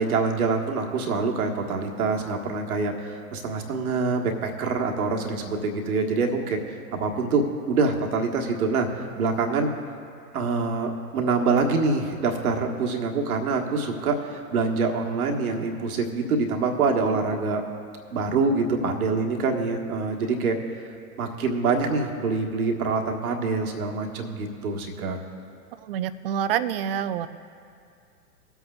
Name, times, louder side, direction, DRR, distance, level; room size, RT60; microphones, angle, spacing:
voice 1, 0.0-9.7 10.3-17.6 18.1-20.6 21.2-25.2, right 4 dB, 70° right, 2 dB, 1.4 m, -25 dB
voice 2, 25.8-27.3, right 9 dB, 40° right, 13 dB, 0.5 m, -27 dB
20.5 x 8.0 x 2.3 m, 2.3 s
figure-of-eight pair, 110°, 46 cm